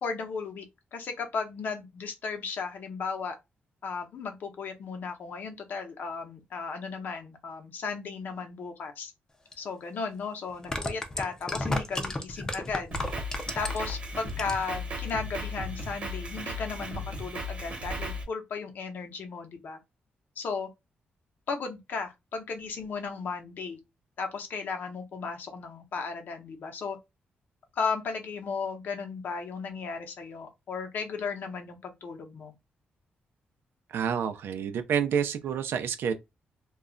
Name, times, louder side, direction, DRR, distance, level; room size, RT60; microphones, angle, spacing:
voice 1, 0.0-3.4 3.8-9.1 9.6-12.9 13.5-19.8 20.4-20.7 21.5-23.8 24.2-27.0 27.7-32.5, left 5 dB, 60° left, 0.7 m, -35 dB
sound 1, 9.5-9.6 10.5-13.9 14.3-14.8 15.1-15.2, left 2 dB, 15° left, 0.4 m, -32 dB
Drum kit, 12.9-18.2, left 1 dB, 35° right, 0.9 m, -36 dB
voice 2, 33.9-36.1, right 7 dB, 80° right, 0.5 m, -28 dB
2.3 x 2.1 x 3.7 m
wide cardioid pair, 165°, 4 cm